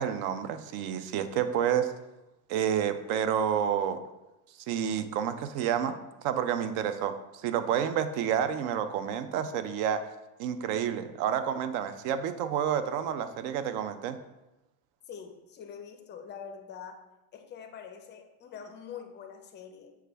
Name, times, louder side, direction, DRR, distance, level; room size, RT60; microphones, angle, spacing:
voice 1, 0.0-1.9 2.5-4.0 4.7-7.1 7.4-10.1 10.4-14.2, right 9 dB, 60° right, 11 dB, 0.5 m, -29 dB
voice 2, 15.1-17.0 17.3-20.0, left 7 dB, 25° left, 5 dB, 0.4 m, -44 dB
6.3 x 2.3 x 3.4 m, 0.98 s
supercardioid pair, 115°, 45 cm